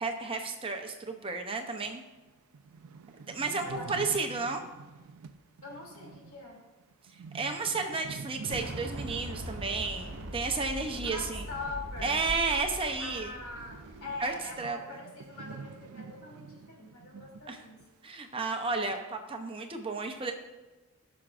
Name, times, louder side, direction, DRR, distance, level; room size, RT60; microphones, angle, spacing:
voice 1, 0.0-2.0 3.3-4.7 7.1-11.4 12.0-13.3 14.2-14.8 17.5-17.6 18.0-20.3, right 4 dB, 25° right, 4 dB, 0.6 m, -32 dB
sound 1, 1.8-1.9 2.3-2.4 2.5-12.8 13.0-17.5 17.8-17.9 18.5-19.0, right 5 dB, 75° right, 0.4 m, -47 dB
voice 2, 3.6-4.6 5.6-6.6 10.8-12.2 13.0-17.8, left 3 dB, 70° left, -2 dB, 2.7 m, -43 dB
Explosion, 8.5-14.5, equal, 55° right, 1.1 m, -42 dB
18.0 x 6.1 x 2.5 m, 1.1 s
head